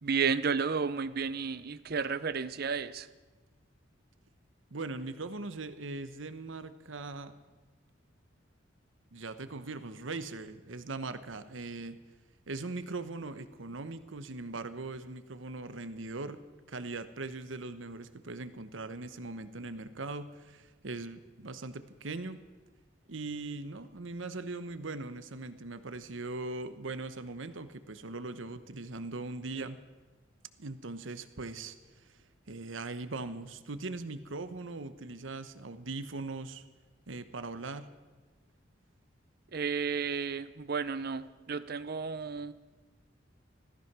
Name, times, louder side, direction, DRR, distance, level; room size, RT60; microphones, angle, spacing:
voice 1, 0.0-3.1 39.5-42.5, right 5 dB, 55° right, 14 dB, 0.7 m, -32 dB
voice 2, 4.7-7.3 9.1-12.0 12.5-16.4 16.7-22.4 23.1-29.8 30.6-31.8 32.1-32.2 32.5-36.6 37.1-37.9, right 3 dB, 80° right, 11 dB, 1.0 m, -40 dB
16.5 x 14.0 x 6.1 m, 1.2 s
head